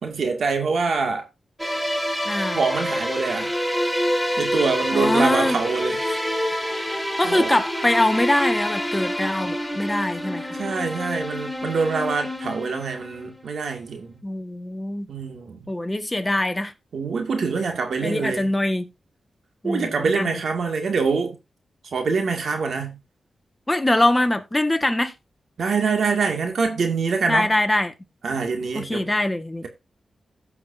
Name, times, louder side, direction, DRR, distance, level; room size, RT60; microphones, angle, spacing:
voice 1, 0.0-1.2 2.5-3.5 4.4-6.2 7.2-7.6 10.5-14.2 15.1-15.7 16.9-18.5 19.6-21.4 21.9-23.0 25.6-27.5 28.2-29.1, right 4 dB, 75° right, 2.3 m, -25 dB
sound 1, 1.6-13.4, equal, ahead, 2.0 m, -27 dB
voice 2, 2.2-2.6 4.9-5.6 7.2-10.6 14.2-15.0 15.7-16.7 18.0-18.9 19.6-20.4 23.7-25.1 27.3-27.9 28.7-29.6, left 1 dB, 20° left, 1.6 m, -23 dB
17.0 x 5.9 x 2.7 m
cardioid pair, 55°, 0 cm